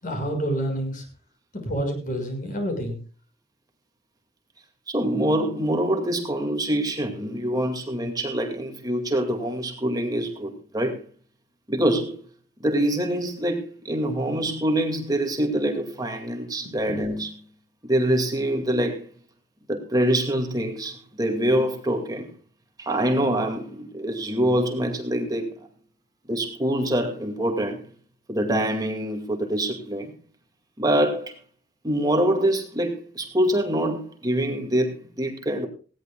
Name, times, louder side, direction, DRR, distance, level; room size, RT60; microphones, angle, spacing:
voice 1, 0.0-1.1 1.5-3.0, right 1 dB, 50° left, 6.2 m, -28 dB
voice 2, 4.9-11.0 11.7-12.2 12.6-17.4 17.9-19.1 19.7-22.3 22.8-25.7 26.3-27.8 28.3-30.1 30.8-31.3 31.8-35.7, right 1 dB, 20° right, 2.3 m, -25 dB
19.5 x 17.0 x 2.4 m
head